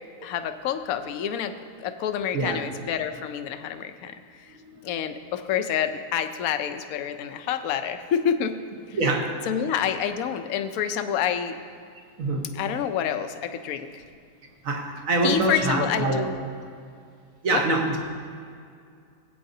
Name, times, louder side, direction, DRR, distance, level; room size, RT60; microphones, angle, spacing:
voice 1, 0.2-4.1 4.8-8.6 8.9-9.0 9.5-11.6 12.5-14.0 15.2-16.3 17.5-17.6, left 8 dB, 75° left, 8 dB, 1.0 m, -28 dB
voice 2, 8.9-9.3 12.2-12.5 14.6-16.2 17.4-18.0, right 2 dB, 60° right, 1 dB, 1.6 m, -24 dB
17.5 x 8.7 x 2.7 m, 2.3 s
omnidirectional pair, 1.6 m